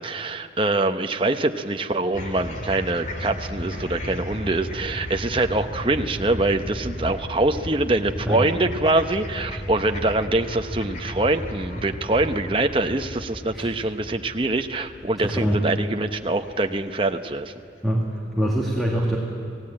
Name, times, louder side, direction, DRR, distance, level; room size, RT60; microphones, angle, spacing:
voice 1, 0.0-17.5, right 2 dB, 30° right, 6 dB, 0.9 m, -24 dB
sound 1, 2.1-17.5, left 1 dB, 40° left, 2.8 m, -35 dB
voice 2, 15.2-15.6 17.8-19.2, equal, ahead, -2 dB, 2.3 m, -24 dB
29.0 x 18.5 x 8.8 m, 2.6 s
head